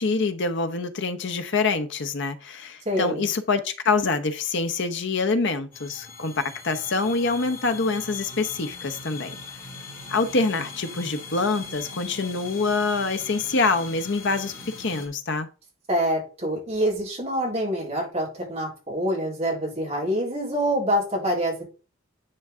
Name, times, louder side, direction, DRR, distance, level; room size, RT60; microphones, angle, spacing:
voice 1, 0.0-6.3 6.6-9.4 10.1-15.5, left 3 dB, 60° left, 0.9 m, -25 dB
voice 2, 2.9-3.3 15.9-21.6, equal, 30° right, 4.0 m, -26 dB
sound 1, 5.7-15.1, left 4 dB, 45° left, 2.3 m, -40 dB
10.0 x 4.7 x 3.7 m
head